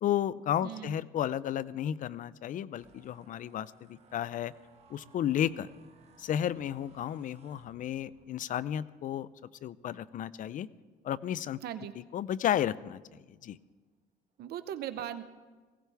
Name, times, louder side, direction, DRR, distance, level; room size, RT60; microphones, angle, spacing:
voice 1, 0.0-4.5 4.9-5.7 6.2-9.3 9.6-10.7 11.0-11.6 12.1-13.6, left 10 dB, 50° left, 18 dB, 0.5 m, -33 dB
voice 2, 0.6-1.0 11.6-11.9 14.4-15.2, right 11 dB, 70° right, 11 dB, 0.7 m, -38 dB
sound 1, 2.7-12.1 12.6-12.9 13.2-13.7, right 4 dB, 40° right, 1.8 m, -64 dB
20.0 x 17.0 x 3.4 m, 1.3 s
cardioid pair, 110°, 17 cm